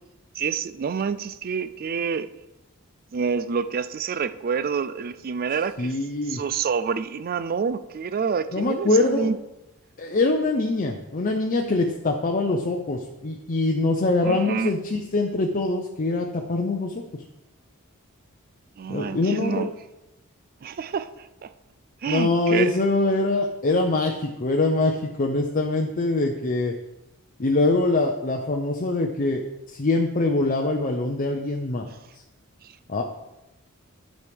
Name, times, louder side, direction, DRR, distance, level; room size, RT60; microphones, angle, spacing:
voice 1, 0.3-2.3 3.1-5.9 6.3-9.4 14.2-14.7 18.8-19.7 20.6-21.5 22.0-22.8 32.6-32.7, right 6 dB, 45° right, 13 dB, 0.4 m, -28 dB
voice 2, 5.8-6.4 8.5-9.3 10.0-17.2 18.9-19.7 22.1-26.7 27.4-31.9 32.9-33.0, left 2 dB, 40° left, 2 dB, 0.6 m, -23 dB
11.0 x 6.3 x 3.5 m, 0.97 s
head